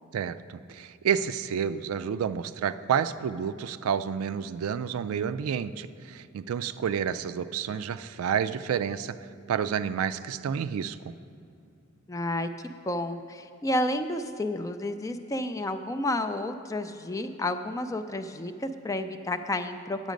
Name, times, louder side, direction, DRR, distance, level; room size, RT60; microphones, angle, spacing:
voice 1, 0.1-9.2 9.5-11.1, right 7 dB, 80° right, 14 dB, 0.3 m, -30 dB
voice 2, 12.1-12.5 12.9-20.1, left 1 dB, 15° left, 9 dB, 0.3 m, -31 dB
9.3 x 8.2 x 5.1 m, 2.6 s
head